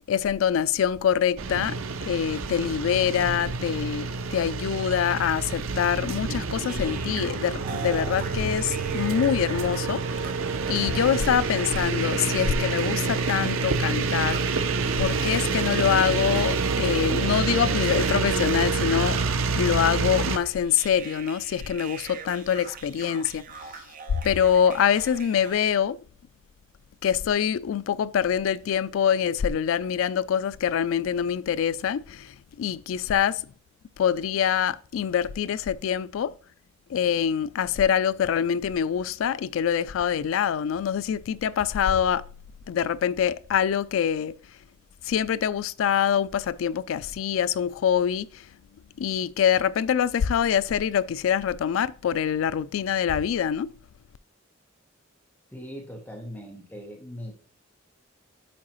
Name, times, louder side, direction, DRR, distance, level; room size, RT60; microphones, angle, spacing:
voice 1, 0.1-10.2 10.7-14.6 15.0-19.2 19.6-23.4 24.2-26.0 27.0-33.5 34.0-36.3 36.9-42.2 42.7-44.3 45.0-48.4 49.0-53.7, left 8 dB, 75° left, 0.3 m, -25 dB
sound 1, 1.4-20.4, right 4 dB, 85° right, 0.6 m, -27 dB
sound 2, 6.7-25.6, right 5 dB, 45° right, 0.7 m, -42 dB
voice 2, 55.5-57.3, equal, 10° left, 1.1 m, -40 dB
8.4 x 4.8 x 3.0 m
head